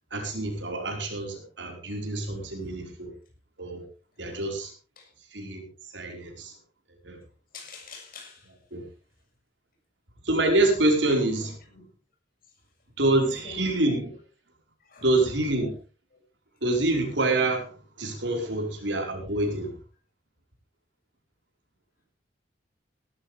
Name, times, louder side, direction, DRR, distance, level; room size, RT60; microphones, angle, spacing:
voice 1, 0.1-3.1 3.6-3.8 4.2-4.7 5.3-5.6 5.9-6.5 7.0-7.2 8.7-8.8 10.2-11.5 13.0-14.1 15.0-15.7 16.6-19.7, right 2 dB, 80° right, 2 dB, 5.0 m, -26 dB
voice 2, 7.5-8.5 11.3-11.5 11.7-11.8 13.2-13.6 14.9-15.1, left 4 dB, 55° left, 2 dB, 7.1 m, -45 dB
18.5 x 13.0 x 3.6 m, 0.36 s
head